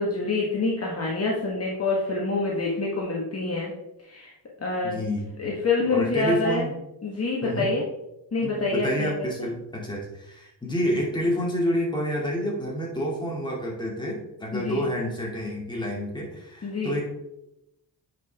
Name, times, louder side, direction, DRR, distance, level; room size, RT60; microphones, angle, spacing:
voice 1, 0.0-3.7 4.0-4.3 4.6-4.9 5.4-6.7 7.0-7.8 8.3-9.1 14.5-14.8 16.6-17.0, left 3 dB, 35° left, -3 dB, 1.5 m, -26 dB
voice 2, 4.8-5.3 5.9-6.7 7.4-7.7 8.4-17.0, equal, 10° left, -3 dB, 2.5 m, -28 dB
8.9 x 5.5 x 3.5 m, 0.88 s
cardioid pair, 110°, 42 cm